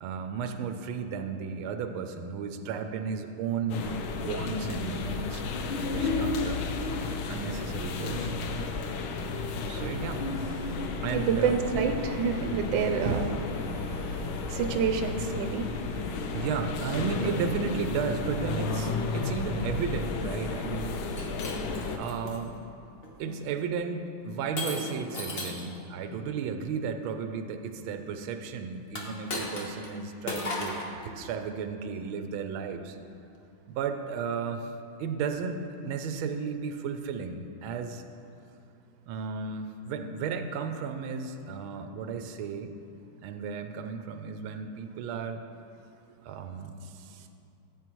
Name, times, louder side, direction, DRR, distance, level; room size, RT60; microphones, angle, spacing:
voice 1, 0.0-5.4 5.9-6.6 7.3-8.3 9.7-10.2 11.0-11.6 12.4-12.8 16.3-21.3 21.9-22.6 23.2-33.0 33.7-34.7 35.0-38.0 39.1-42.7 43.2-45.4 46.2-46.8, right 6 dB, 90° right, 7 dB, 1.4 m, -34 dB
sound 1, 3.7-22.0, left 3 dB, 85° left, 1.5 m, -32 dB
voice 2, 10.6-16.4, right 5 dB, 70° right, 6 dB, 1.3 m, -29 dB
Shatter, 21.0-22.4 23.0-23.4 24.6-25.7 28.9-29.9 30.3-30.9, left 2 dB, 35° left, 1.1 m, -35 dB
14.5 x 8.1 x 3.0 m, 2.6 s
omnidirectional pair, 2.2 m